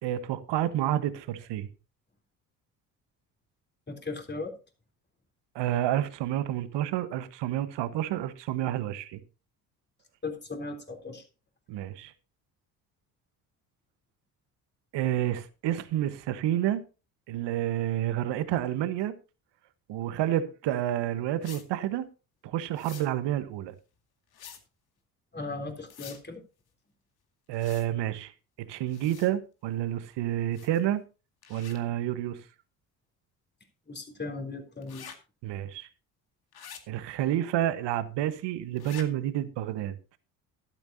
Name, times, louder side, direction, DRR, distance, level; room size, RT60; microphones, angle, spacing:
voice 1, 0.0-1.7 5.5-9.2 11.7-12.1 14.9-16.8 17.3-19.1 19.9-22.1 22.4-23.7 27.5-28.3 28.6-31.0 31.5-32.4 35.4-35.9 36.9-40.0, right 12 dB, 60° right, 1.3 m, -29 dB
voice 2, 3.9-4.6 10.2-11.2 25.3-26.4 33.9-35.1, left 3 dB, 20° left, 3.6 m, -37 dB
sound 1, 21.4-21.7 22.8-23.1 24.3-24.6 25.9-26.2 27.5-27.9 28.9-29.3 30.5-30.9 31.4-31.8 34.8-35.2 36.5-36.8 38.8-39.1, left 8 dB, 50° left, 2.3 m, -46 dB
13.5 x 12.0 x 2.8 m
hypercardioid pair, 55°, 46 cm